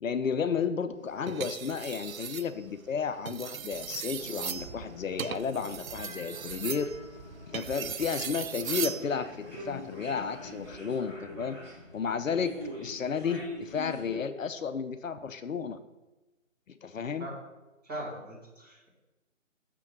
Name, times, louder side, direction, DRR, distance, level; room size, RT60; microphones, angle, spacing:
voice 1, 0.0-6.9 7.5-11.6 11.9-15.8 16.7-17.3, left 6 dB, 75° left, 10 dB, 0.6 m, -32 dB
sound 1, 1.3-2.5 3.1-9.0 10.5-10.8, right 8 dB, 85° right, 0.5 m, -38 dB
sound 2, 4.2-14.2, left 1 dB, 5° left, 0.8 m, -44 dB
voice 2, 17.9-18.9, right 1 dB, 10° right, -9 dB, 2.3 m, -40 dB
6.6 x 3.8 x 6.1 m, 1.1 s
figure-of-eight pair, 155°, 40 cm